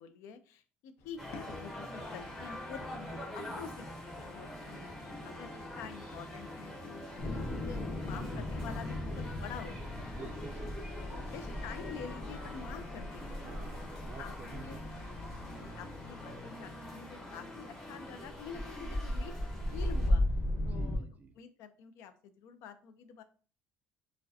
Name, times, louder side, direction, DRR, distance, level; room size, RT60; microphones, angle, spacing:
voice 1, 0.0-3.7 4.0-10.3 10.9-13.5 14.0-14.8 15.5-19.3 19.7-20.2 20.6-21.0 21.4-23.2, left 7 dB, 85° left, 11 dB, 0.4 m, -48 dB
sound 1, 1.0-18.5, left 3 dB, 60° left, 0.7 m, -55 dB
sound 2, 1.2-20.1, left 1 dB, 10° left, 0.9 m, -45 dB
voice 2, 4.7-5.4 7.0-7.2 10.0-11.4 13.4-15.1 20.6-21.3, right 4 dB, 35° right, 7 dB, 0.4 m, -51 dB
sound 3, 7.2-16.0 18.2-21.0, left 1 dB, 35° left, 0.9 m, -36 dB
4.6 x 2.1 x 2.7 m, 0.41 s
cardioid pair, 160°, 5 cm